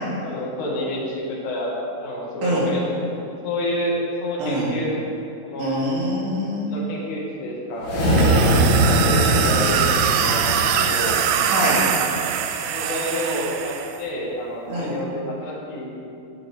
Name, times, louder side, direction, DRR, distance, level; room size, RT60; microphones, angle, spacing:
voice 1, 0.2-1.7 2.0-3.2 3.4-5.0 5.4-5.8 6.7-7.9 8.7-11.1 12.6-15.9, left 1 dB, 75° left, -4 dB, 4.4 m, -29 dB
voice 2, 5.6-6.7 11.4-11.8 14.7-15.0, equal, 65° right, -6 dB, 4.1 m, -24 dB
sound 1, 7.7-12.1, right 1 dB, 55° left, 4.0 m, -21 dB
sound 2, 8.0-14.0, right 8 dB, 80° right, 2.8 m, -23 dB
16.5 x 9.5 x 3.6 m, 2.7 s
omnidirectional pair, 5.7 m